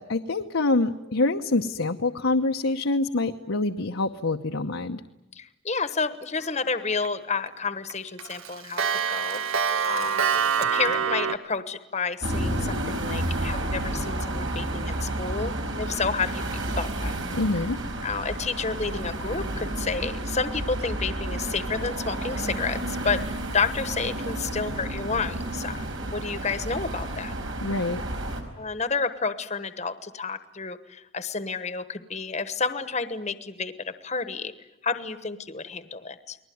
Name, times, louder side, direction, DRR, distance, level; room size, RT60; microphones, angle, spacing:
voice 1, 0.0-5.0 17.3-17.8 27.6-28.0, left 2 dB, 80° left, 3 dB, 1.0 m, -26 dB
voice 2, 5.3-10.3 10.6-16.5 16.8-17.2 18.0-27.3 28.6-34.5 34.8-36.4, left 4 dB, 35° left, 11 dB, 1.1 m, -30 dB
Clock, 6.6-7.1 7.5-7.6 7.9-11.4, right 7 dB, 90° right, 1.4 m, -25 dB
sound 1, 12.2-28.4, right 1 dB, 70° right, 4.7 m, -31 dB
30.0 x 20.5 x 9.4 m, 0.95 s
head